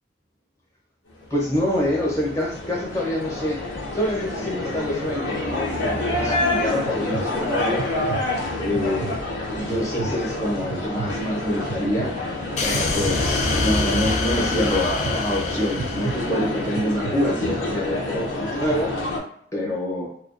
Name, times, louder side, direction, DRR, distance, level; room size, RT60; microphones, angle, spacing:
sound 1, 1.2-19.2, left 2 dB, 75° left, 0.7 m, -28 dB
voice 1, 1.3-3.6 3.9-7.9 8.6-9.1 9.5-12.1 12.6-18.9 19.5-20.1, left 1 dB, 15° left, -4 dB, 0.7 m, -26 dB
sound 2, 6.1-6.2 6.8-7.2 7.8-8.2 8.7-9.2 9.7-10.1 10.7-11.1 11.7-12.1 12.7-13.1 13.8-14.1 14.8-15.1 15.8-16.1 16.7-17.1, right 5 dB, 90° right, 0.3 m, -32 dB
sound 3, 12.6-16.9, left 3 dB, 35° left, 0.3 m, -26 dB
2.3 x 2.2 x 2.5 m, 0.68 s
head